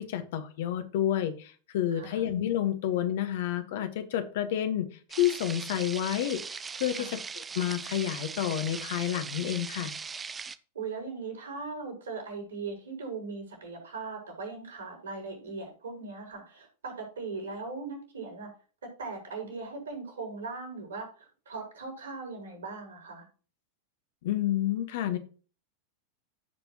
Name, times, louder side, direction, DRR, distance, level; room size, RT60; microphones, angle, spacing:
voice 1, 0.0-4.9 5.2-7.2 7.5-9.9 24.2-25.2, left 11 dB, 55° left, 9 dB, 1.4 m, -29 dB
sound 1, 5.1-10.6, right 5 dB, 15° right, 0.6 m, -39 dB
voice 2, 10.7-18.5 18.8-23.3, right 4 dB, 70° right, 2 dB, 5.3 m, -39 dB
15.5 x 5.4 x 2.9 m, 0.38 s
figure-of-eight pair, 90°, 0 cm